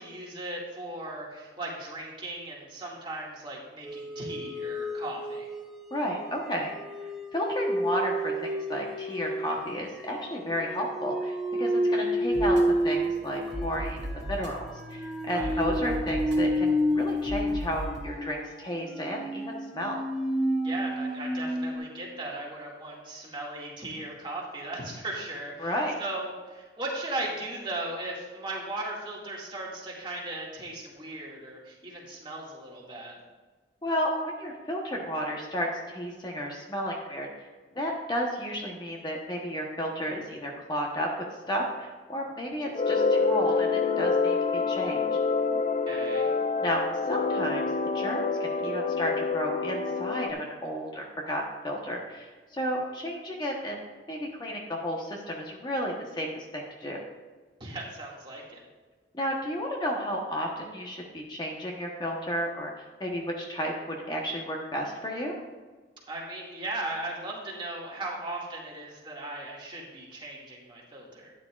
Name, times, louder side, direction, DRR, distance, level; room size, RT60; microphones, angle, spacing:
voice 1, 0.0-5.5 15.3-15.6 20.6-33.2 45.9-46.3 57.6-58.6 66.1-71.3, right 2 dB, 25° right, -4 dB, 2.1 m, -37 dB
sound 1, 3.8-21.8, equal, 5° right, 1.0 m, -30 dB
voice 2, 5.9-6.7 7.3-12.6 12.8-14.0 14.3-14.6 14.9-20.0 25.6-26.0 33.8-37.3 37.7-41.1 41.5-45.0 46.6-47.6 47.9-53.8 54.1-57.0 59.1-62.7 63.0-65.3, equal, 25° left, -1 dB, 1.0 m, -32 dB
sound 2, 12.3-18.0, equal, 80° right, 1.8 m, -38 dB
sound 3, 42.7-50.3, left 4 dB, 40° left, 0.5 m, -27 dB
12.5 x 9.5 x 2.4 m, 1.4 s
head